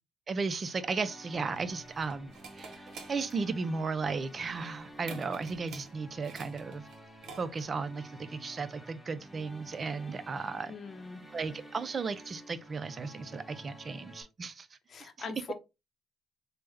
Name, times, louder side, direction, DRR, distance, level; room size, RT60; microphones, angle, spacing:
voice 1, 0.3-2.3 2.6-6.8 7.4-10.7 11.3-14.7 15.0-15.1, right 4 dB, 40° right, 0.4 m, -35 dB
sound 1, 0.5-14.2, equal, ahead, 0.8 m, -51 dB
sound 2, 1.3-7.8, right 5 dB, 70° right, 0.7 m, -50 dB
voice 2, 10.7-11.2 14.9-15.5, left 5 dB, 50° left, 0.7 m, -42 dB
3.3 x 2.1 x 3.3 m
cardioid pair, 90°, 0 cm